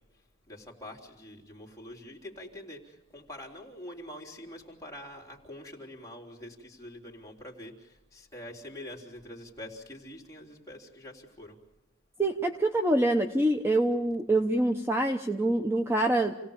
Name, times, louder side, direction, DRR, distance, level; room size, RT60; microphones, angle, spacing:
voice 1, 0.5-11.6, left 1 dB, 15° left, -1 dB, 3.6 m, -45 dB
voice 2, 12.2-16.3, right 1 dB, 10° right, 5 dB, 0.9 m, -25 dB
28.5 x 17.5 x 7.2 m, 1.0 s
head